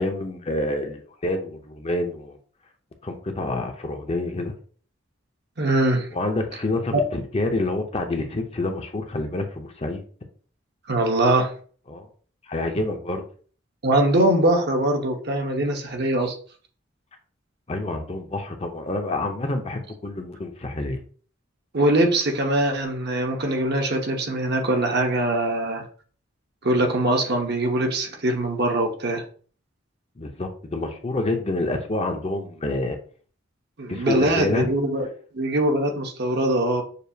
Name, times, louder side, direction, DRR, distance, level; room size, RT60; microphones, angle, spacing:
voice 1, 0.0-2.4 3.0-4.5 6.1-10.0 11.9-12.1 12.5-13.2 17.7-21.0 30.2-33.0 33.9-34.7, left 2 dB, 30° left, 5 dB, 0.6 m, -27 dB
voice 2, 5.6-6.1 6.9-7.0 10.9-11.5 13.8-16.4 21.7-25.8 26.6-29.2 33.8-35.1 35.3-36.8, right 1 dB, 55° right, 2 dB, 0.9 m, -22 dB
6.6 x 2.3 x 2.8 m, 0.43 s
head